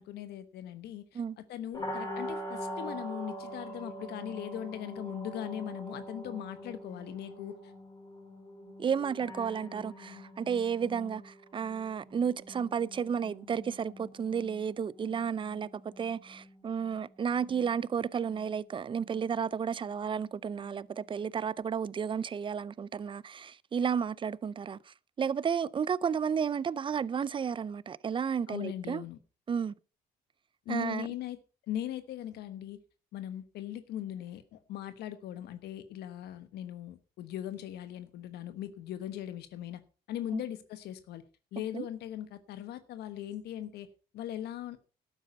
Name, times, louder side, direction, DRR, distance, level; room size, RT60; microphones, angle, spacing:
voice 1, 0.0-1.2 1.5-7.7 28.5-29.2 30.6-31.4 31.7-32.8 33.1-39.8 40.1-41.2 41.5-43.9 44.1-44.8, left 11 dB, 75° left, 1.2 m, -39 dB
sound 1, 1.7-21.6, equal, 20° left, 5.2 m, -45 dB
voice 2, 8.8-29.0 29.5-29.7 30.7-31.1 40.3-40.4 41.7-41.9, right 7 dB, 30° right, 0.5 m, -32 dB
12.0 x 8.9 x 5.3 m
cardioid pair, 110°, 17 cm